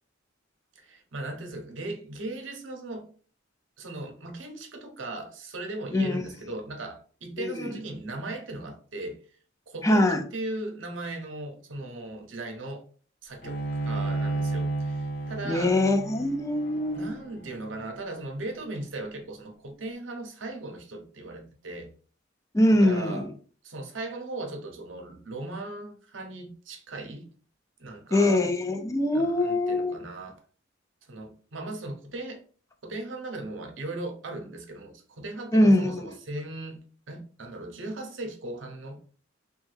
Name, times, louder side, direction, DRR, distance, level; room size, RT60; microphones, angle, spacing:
voice 1, 0.8-3.1 3.8-9.2 9.7-12.8 13.2-15.8 16.9-21.9 22.7-23.3 23.6-27.3 27.8-28.4 29.1-30.4 31.0-32.4 32.8-36.8 37.1-39.0, right 2 dB, 70° right, 0.7 m, -38 dB
voice 2, 7.4-7.7 9.8-10.2 15.4-17.1 22.5-23.3 28.1-30.0 35.5-36.1, left 1 dB, 15° left, 0.4 m, -23 dB
Bowed string instrument, 13.4-18.7, right 2 dB, 55° left, 0.9 m, -33 dB
3.2 x 2.2 x 3.2 m
head